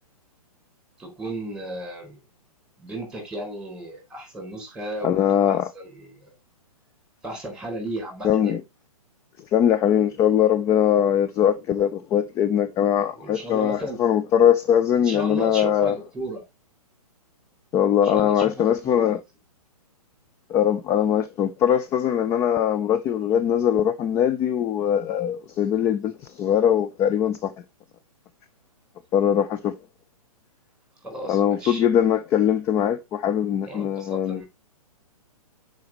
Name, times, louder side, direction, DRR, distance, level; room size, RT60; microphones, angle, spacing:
voice 1, 1.0-2.2 2.8-6.3 7.2-8.5 13.1-14.0 15.0-16.4 18.0-19.2 31.0-31.8 33.6-34.5, right 1 dB, 5° right, 4.3 m, -35 dB
voice 2, 5.0-5.7 8.2-8.6 9.5-16.0 17.7-19.2 20.5-27.5 29.1-29.7 31.3-34.4, left 9 dB, 15° left, 0.4 m, -21 dB
10.5 x 5.1 x 3.0 m
hypercardioid pair, 130°, 19 cm